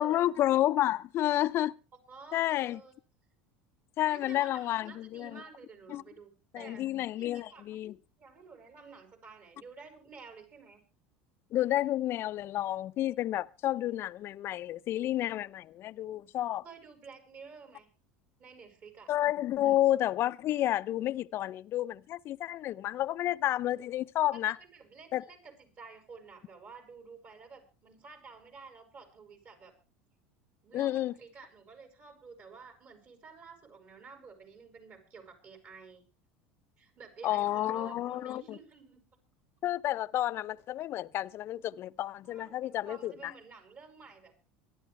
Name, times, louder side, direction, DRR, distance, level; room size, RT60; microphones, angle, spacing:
voice 1, 0.0-1.8 2.3-2.8 4.0-5.4 5.9-6.0 6.5-8.0 11.5-16.6 19.1-24.6 25.1-25.3 30.7-31.1 37.2-38.6 39.6-43.3, left 13 dB, 50° left, 0.7 m, -30 dB
voice 2, 2.1-3.0 4.1-6.9 7.2-7.8 8.2-10.8 16.6-17.9 18.4-19.1 19.6-19.7 24.6-29.7 30.6-36.0 36.8-39.0 42.2-44.3, right 5 dB, 45° right, 6.6 m, -51 dB
25.0 x 11.5 x 3.3 m
hypercardioid pair, 85°, 5 cm